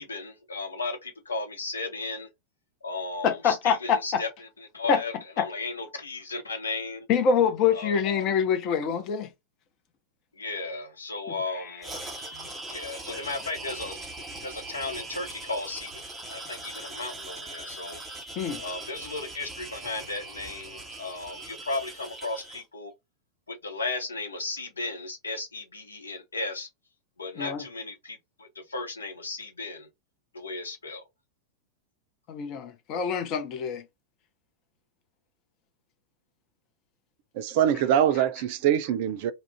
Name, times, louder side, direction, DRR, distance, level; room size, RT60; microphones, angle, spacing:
voice 1, 0.0-2.3 2.8-7.1 7.7-8.2 10.3-11.9 12.7-14.0 14.4-15.9 16.3-18.0 18.6-22.9 23.5-26.7 27.2-29.9 30.3-31.0, left 3 dB, 75° left, 0.8 m, -35 dB
voice 2, 3.2-4.2 4.9-5.0 5.4-5.5 7.1-9.3 12.3-12.5 13.1-13.2 18.4-18.6 27.4-27.6 32.3-33.8, left 6 dB, 40° left, 0.6 m, -25 dB
sound 1, 11.8-22.6, right 2 dB, 10° right, 1.1 m, -40 dB
voice 3, 37.4-39.3, right 10 dB, 50° right, 0.4 m, -23 dB
2.4 x 2.0 x 3.4 m
figure-of-eight pair, 90°, 0 cm